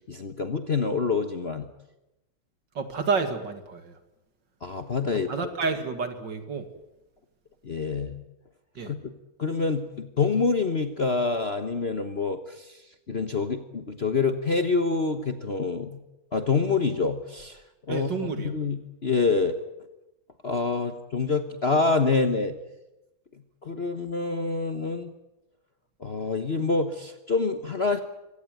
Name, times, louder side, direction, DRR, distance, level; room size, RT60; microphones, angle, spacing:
voice 1, 0.1-1.7 4.6-5.3 7.6-8.2 8.8-9.0 9.4-12.7 13.1-16.0 16.3-17.6 17.9-18.1 18.4-19.6 20.4-22.6 23.6-25.1 26.0-28.0, left 4 dB, 35° left, 8 dB, 1.1 m, -26 dB
voice 2, 2.7-3.9 5.1-6.7 8.8-8.9 17.9-18.5, right 4 dB, 60° right, 8 dB, 2.7 m, -30 dB
24.0 x 17.5 x 9.2 m, 0.95 s
omnidirectional pair, 2.2 m